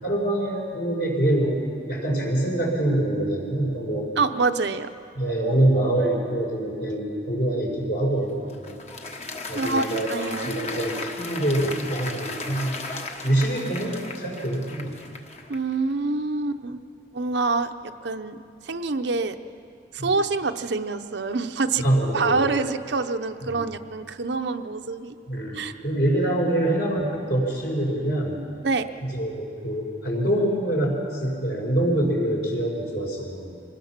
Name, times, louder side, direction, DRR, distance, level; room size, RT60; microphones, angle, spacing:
voice 1, 0.0-4.1 5.1-8.8 9.5-10.1 10.4-12.8 13.2-14.9 20.0-20.1 21.8-22.4 23.5-23.6 25.3-28.4 29.0-33.5, right 1 dB, 60° left, -1 dB, 4.8 m, -25 dB
voice 2, 4.2-4.9 9.5-10.5 15.5-16.8 17.1-18.4 18.6-19.4 19.9-21.8 22.1-25.1 25.5-25.7 28.6-28.8, right 3 dB, 65° right, 8 dB, 0.7 m, -26 dB
Applause, 8.1-15.7, left 3 dB, 35° left, 1.3 m, -36 dB
25.0 x 19.5 x 5.9 m, 2.4 s
head